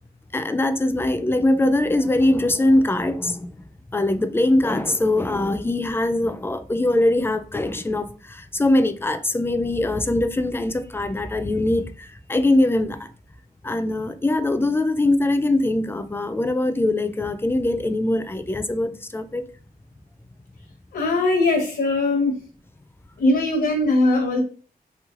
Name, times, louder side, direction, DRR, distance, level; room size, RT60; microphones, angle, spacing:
voice 1, 0.3-3.6 3.9-13.1 13.6-19.4, left 1 dB, 15° left, 0.3 m, -22 dB
voice 2, 20.9-22.4 23.2-24.4, left 2 dB, 85° left, 0.8 m, -20 dB
3.2 x 3.1 x 2.4 m
wide cardioid pair, 125°, 16 cm